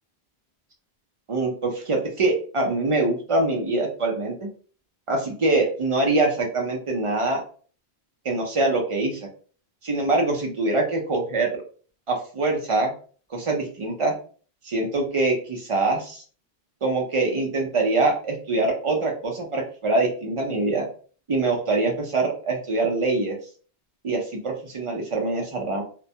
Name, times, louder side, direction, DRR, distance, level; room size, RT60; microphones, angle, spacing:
voice 1, 1.3-4.5 5.1-7.4 8.2-9.3 9.8-11.6 12.1-12.9 13.3-14.1 14.6-16.2 16.8-20.9 21.3-23.4 24.0-25.8, right 2 dB, 50° right, 1 dB, 0.4 m, -24 dB
2.2 x 2.1 x 2.6 m, 0.42 s
omnidirectional pair, 1.1 m